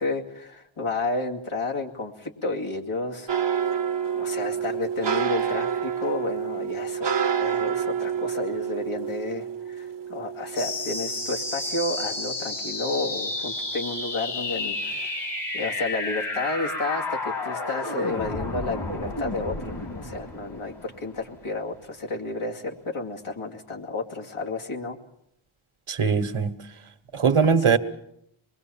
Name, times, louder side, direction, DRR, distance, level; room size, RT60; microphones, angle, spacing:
voice 1, 0.0-3.8 4.1-7.1 7.4-25.0, left 2 dB, 80° left, 2.6 m, -31 dB
sound 1, 3.3-12.5 12.9-13.9 14.3-14.6 14.9-15.1, right 7 dB, 60° right, 1.0 m, -29 dB
sound 2, 10.5-21.6, left 2 dB, 55° left, 3.1 m, -31 dB
voice 2, 25.9-26.7 27.1-27.8, right 6 dB, 80° right, 1.4 m, -21 dB
25.0 x 21.5 x 7.1 m
wide cardioid pair, 60°, 49 cm